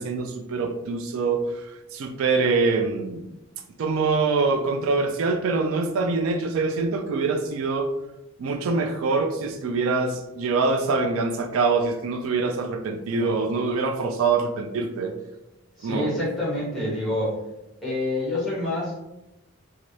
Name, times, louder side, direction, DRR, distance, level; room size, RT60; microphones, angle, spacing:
voice 1, 0.0-1.6 1.9-3.3 3.8-7.9 8.4-15.1 15.8-16.1, right 4 dB, 75° right, 5 dB, 0.3 m, -24 dB
voice 2, 15.8-17.3 17.8-19.0, left 1 dB, ahead, -7 dB, 1.2 m, -27 dB
3.1 x 2.5 x 2.6 m, 0.93 s
head